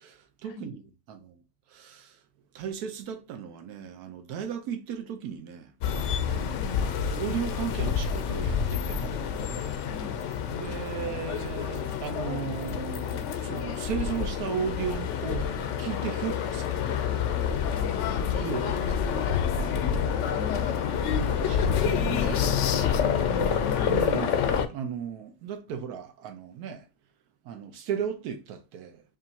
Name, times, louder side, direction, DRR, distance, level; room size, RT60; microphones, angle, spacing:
voice 1, 0.0-1.4 1.7-2.2 2.5-5.7 6.3-6.7 7.2-9.1 10.5-15.5 15.8-16.8 18.3-19.7 21.3-22.4 23.9-26.8 27.4-29.0, right 7 dB, 85° right, 1.2 m, -36 dB
sound 1, 5.8-24.7, left 7 dB, 65° left, 0.7 m, -28 dB
voice 2, 6.5-6.8 9.8-10.2 17.7-18.4 20.4-21.4 21.9-23.9, left 4 dB, 80° left, 1.1 m, -42 dB
5.2 x 2.5 x 2.7 m
omnidirectional pair, 1.6 m